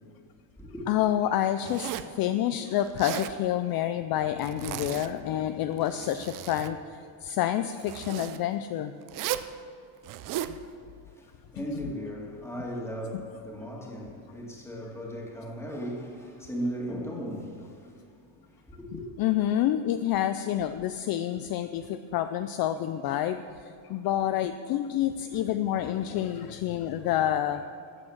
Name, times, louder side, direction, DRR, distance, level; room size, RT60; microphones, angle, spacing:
voice 1, 0.9-6.8 7.2-8.9 10.5-10.6 11.6-11.7 19.2-27.6, left 11 dB, 50° left, 0.5 m, -28 dB
Zipper (clothing), 1.6-2.2 2.8-3.4 4.4-5.3 5.7-6.7 7.8-8.4 9.1-9.5 10.0-10.6, right 12 dB, 45° right, 0.5 m, -35 dB
voice 2, 10.7-19.1, equal, 5° left, 2.1 m, -37 dB
14.5 x 8.9 x 7.2 m
cardioid pair, 170°, 47 cm